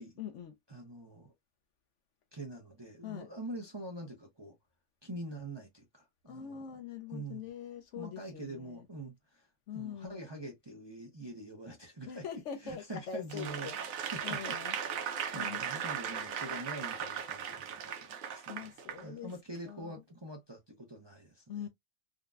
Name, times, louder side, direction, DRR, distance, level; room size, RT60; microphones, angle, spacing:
voice 1, 0.2-0.6 3.0-3.3 6.3-8.9 9.7-10.2 12.1-14.8 15.3-15.6 16.2-16.6 18.5-19.4 19.6-20.0 21.5-21.7, left 7 dB, 65° left, 0.8 m, -43 dB
voice 2, 0.7-1.3 2.3-4.5 5.0-6.8 7.1-7.5 7.9-9.5 9.7-12.2 12.6-14.6 14.9-18.7 19.0-21.7, right 1 dB, 25° right, 0.6 m, -45 dB
Applause / Crowd, 13.3-19.0 19.6-19.7, right 8 dB, 70° right, 1.1 m, -38 dB
3.8 x 2.2 x 2.4 m
omnidirectional pair, 1.5 m